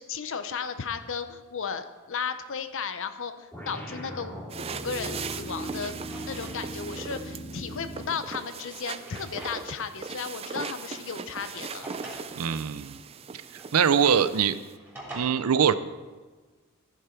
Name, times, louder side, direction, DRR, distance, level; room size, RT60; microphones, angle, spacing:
voice 1, 0.0-6.0 6.3-11.9, left 6 dB, 65° left, 10 dB, 0.7 m, -35 dB
sound 1, 3.5-8.2, right 1 dB, 5° left, 2.9 m, -39 dB
sound 2, 4.5-14.8, right 5 dB, 30° right, 0.4 m, -39 dB
Drawer open or close, 5.3-6.6 7.0-7.1 8.1-9.8 10.2-10.3 11.1-12.3 13.5-15.2, right 1 dB, 10° right, 3.3 m, -45 dB
voice 2, 12.4-13.0 13.5-14.6 15.1-15.7, right 7 dB, 85° right, 14 dB, 0.5 m, -23 dB
14.0 x 6.6 x 4.5 m, 1.4 s
head